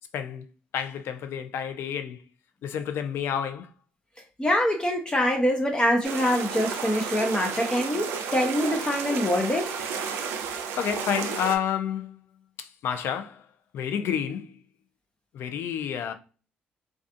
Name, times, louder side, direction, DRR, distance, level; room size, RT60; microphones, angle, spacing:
voice 1, 0.1-0.5 0.7-2.2 2.6-3.7 10.8-12.2 12.6-13.5 13.7-14.6 15.3-16.1, left 8 dB, 70° left, 0.4 m, -30 dB
voice 2, 4.4-9.9, equal, 20° left, 0.6 m, -25 dB
sound 1, 6.0-11.6, right 6 dB, 80° right, 0.4 m, -32 dB
2.4 x 2.3 x 2.5 m
supercardioid pair, 55°, 4 cm